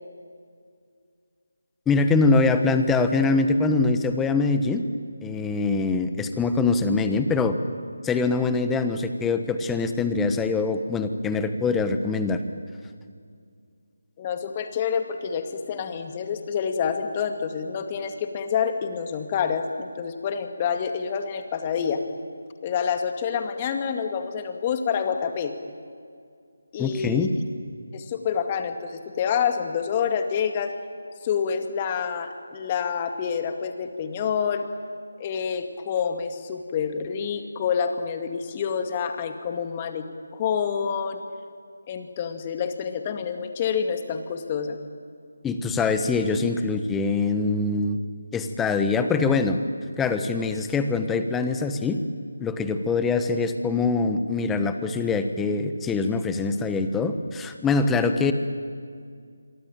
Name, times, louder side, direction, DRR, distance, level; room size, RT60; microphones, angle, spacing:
voice 1, 1.9-4.8 5.2-7.6 8.0-12.4 26.8-27.3 45.4-48.0 48.3-49.6 50.0-52.0 52.4-58.3, left 4 dB, 5° left, 8 dB, 1.2 m, -23 dB
voice 2, 14.2-22.0 22.6-25.5 26.7-27.3 27.9-30.7 31.2-34.6 35.2-40.1 40.3-41.2 41.9-44.8, left 7 dB, 25° left, 7 dB, 2.2 m, -27 dB
28.0 x 23.5 x 9.0 m, 2.2 s
figure-of-eight pair, 160°, 0 cm